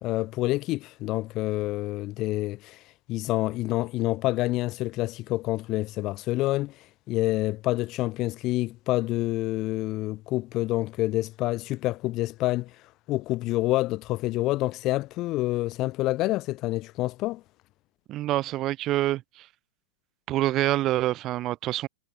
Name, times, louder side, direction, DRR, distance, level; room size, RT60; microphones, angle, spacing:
voice 1, 0.0-2.8 3.1-6.7 7.1-12.7 13.1-17.4, left 18 dB, 30° left, 1.7 m, -27 dB
voice 2, 18.1-19.5 20.3-21.9, right 15 dB, 25° right, 1.6 m, -26 dB
supercardioid pair, 165°, 0 cm